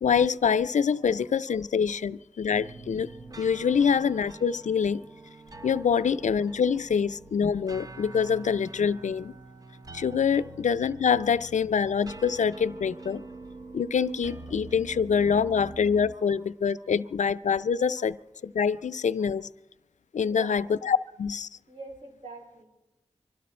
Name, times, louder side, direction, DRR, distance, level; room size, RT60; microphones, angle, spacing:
voice 1, 0.0-3.1 3.4-5.0 5.6-9.3 9.9-13.2 13.7-18.2 18.4-19.5 20.1-21.5, left 6 dB, 80° left, 15 dB, 0.4 m, -25 dB
sound 1, 2.5-16.2, right 2 dB, 30° right, 0.8 m, -45 dB
voice 2, 16.1-16.5 16.8-16.9 18.7-18.8 20.2-20.6 21.7-22.7, right 2 dB, 70° right, -1 dB, 6.1 m, -46 dB
25.0 x 12.5 x 4.3 m, 1.0 s
wide cardioid pair, 60°, 12 cm